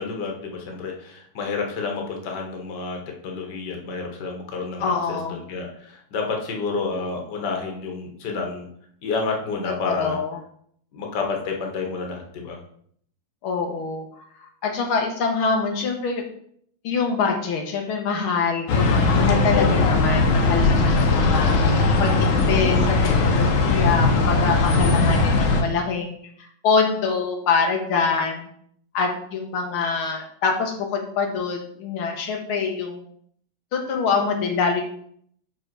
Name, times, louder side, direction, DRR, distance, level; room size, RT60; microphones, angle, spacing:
voice 1, 0.0-3.0 3.2-8.7 9.0-10.2 10.9-12.6 19.5-19.9, left 4 dB, 60° left, 1 dB, 1.8 m, -29 dB
voice 2, 4.8-5.4 9.8-10.4 13.4-14.0 14.6-16.2 16.8-23.0 23.2-26.1 26.6-28.5 28.9-33.0 33.7-34.8, left 5 dB, 90° left, 2 dB, 1.9 m, -25 dB
sound 1, 18.7-25.6, left 3 dB, 75° left, 1.8 m, -19 dB
6.1 x 5.6 x 4.5 m, 0.64 s
omnidirectional pair, 2.2 m